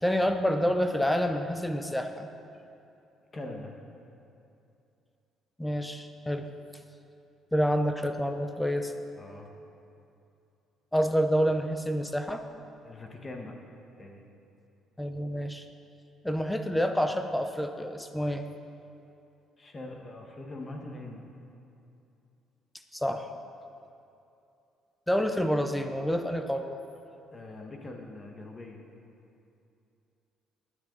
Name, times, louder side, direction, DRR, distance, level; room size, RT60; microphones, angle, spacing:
voice 1, 0.0-2.3 5.6-6.5 7.5-8.9 10.9-12.4 15.0-15.6 16.2-18.4 22.9-23.3 25.1-26.8, equal, 5° left, 7 dB, 0.7 m, -28 dB
voice 2, 3.3-3.8 9.2-9.5 12.8-13.6 14.0-14.2 19.6-21.3 27.3-28.9, left 2 dB, 25° left, 2 dB, 1.5 m, -42 dB
19.0 x 10.0 x 4.0 m, 2.7 s
cardioid pair, 130°, 0 cm